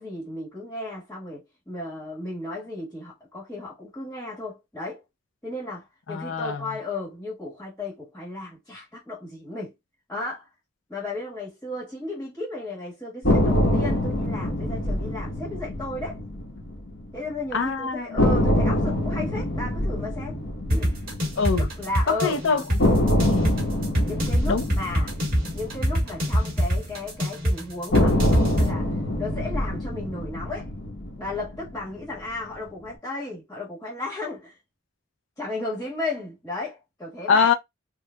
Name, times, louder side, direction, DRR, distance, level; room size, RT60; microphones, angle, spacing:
voice 1, 0.0-5.0 5.4-9.7 10.1-10.5 10.9-16.2 17.1-20.4 20.7-20.9 21.8-22.4 24.0-25.1 25.5-28.9 29.2-30.7 31.2-34.5 35.4-37.5, left 2 dB, 10° left, 1.4 m, -34 dB
voice 2, 6.1-6.7 17.5-18.3 21.4-21.7 22.1-23.5 24.5-24.6 37.3-37.5, left 5 dB, 70° left, 0.5 m, -24 dB
sound 1, 13.2-17.3 17.6-17.7 18.2-22.3 22.8-27.2 27.9-32.3, left 1 dB, 55° left, 1.1 m, -25 dB
sound 2, 20.7-28.7, equal, 45° right, 2.0 m, -24 dB
4.5 x 2.3 x 2.2 m
head